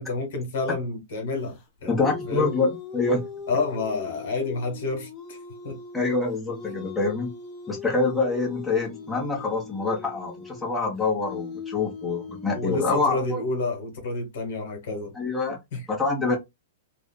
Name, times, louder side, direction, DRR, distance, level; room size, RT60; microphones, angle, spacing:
voice 1, 0.0-2.5 3.5-5.4 5.6-5.8 12.5-15.1 15.7-15.9, left 3 dB, 60° left, 1.2 m, -29 dB
sound 1, 1.5-12.9, left 5 dB, 35° left, 0.8 m, -40 dB
voice 2, 1.9-3.2 5.9-7.3 7.7-13.4 15.1-15.6 15.9-16.4, left 3 dB, 5° left, 1.1 m, -26 dB
2.7 x 2.4 x 2.2 m
hypercardioid pair, 115°, 0 cm